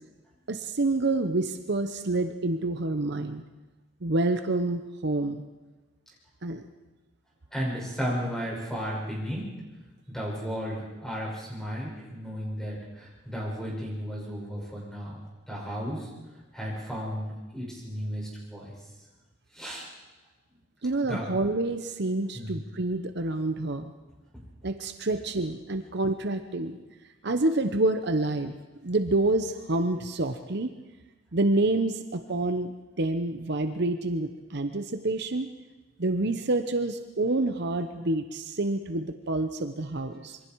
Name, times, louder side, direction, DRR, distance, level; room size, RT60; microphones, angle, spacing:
voice 1, 0.5-3.4 4.0-5.4 6.4-6.7 20.8-23.9 24.6-26.8 27.2-28.5 28.8-30.7 31.3-35.5 36.0-40.4, right 2 dB, 55° right, 7 dB, 0.9 m, -28 dB
voice 2, 7.5-9.5 10.1-15.2 15.4-16.1 16.5-18.7 19.5-19.9 21.1-21.3 22.3-22.6 24.3-24.4, equal, 5° left, -4 dB, 6.4 m, -34 dB
26.5 x 23.0 x 4.7 m, 1.2 s
head